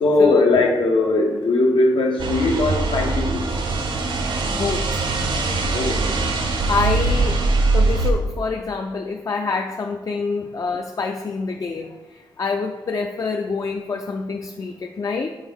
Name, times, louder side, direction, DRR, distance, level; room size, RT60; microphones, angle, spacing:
voice 1, 0.0-3.5 5.7-6.0, left 2 dB, 85° left, 1 dB, 1.0 m, -19 dB
sound 1, 2.2-8.1, right 3 dB, 75° right, 0.7 m, -22 dB
voice 2, 4.2-5.0 6.7-7.4 7.7-15.4, left 4 dB, 45° left, 3 dB, 0.4 m, -26 dB
6.3 x 4.7 x 3.6 m, 1.2 s
wide cardioid pair, 120°, 9 cm